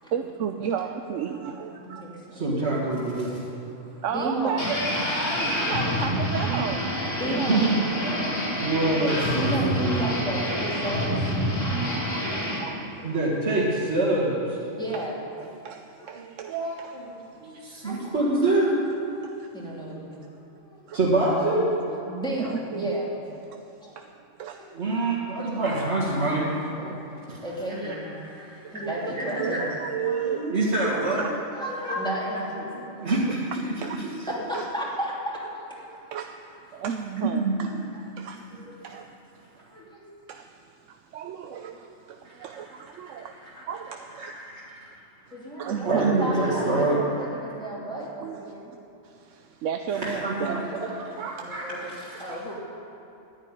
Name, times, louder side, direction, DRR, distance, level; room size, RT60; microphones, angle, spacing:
voice 1, 0.1-2.1 4.0-4.8 5.5-7.0 8.5-8.6 11.7-12.3 12.6-12.8 14.9-15.0 15.4-16.9 19.1-19.5 20.9-21.0 22.4-23.0 23.5-23.6 24.0-24.1 24.4-24.6 25.7-25.8 28.6-29.1 29.4-30.5 33.1-33.2 33.8-34.0 34.5-34.6 36.1-36.3 36.7-37.7 38.2-38.4 38.8-39.1 40.3-40.6 40.9-43.3 43.7-44.3 45.6-46.1 48.2-48.5 49.0-50.6 50.9-51.5 52.3-52.5, right 8 dB, 85° right, 5 dB, 1.0 m, -33 dB
voice 2, 1.6-2.4 4.1-4.7 7.2-7.6 9.4-11.3 13.0-13.2 14.7-15.2 16.0-16.2 17.8-18.1 19.5-21.0 21.5-23.1 23.8-24.0 24.5-24.6 27.4-29.7 30.9-31.0 31.5-32.7 34.3-35.1 38.5-38.8 39.7-40.0 45.3-48.7 51.4-52.5, right 1 dB, 5° left, -6 dB, 2.9 m, -33 dB
voice 3, 2.3-3.4 7.5-7.8 8.6-10.1 13.0-14.6 16.2-18.7 20.9-21.6 24.7-26.5 26.8-26.9 27.3-27.4 27.8-28.7 29.1-29.7 30.0-31.3 31.8-32.5 32.7-34.3 37.2-37.7 42.2-42.6 43.0-43.6 44.2-44.7 45.6-47.0 49.9-52.4, right 2 dB, 60° right, -8 dB, 2.2 m, -27 dB
sound 1, 4.6-12.6, equal, 80° left, 3.3 m, -27 dB
10.5 x 9.9 x 9.8 m, 2.8 s
omnidirectional pair, 1.3 m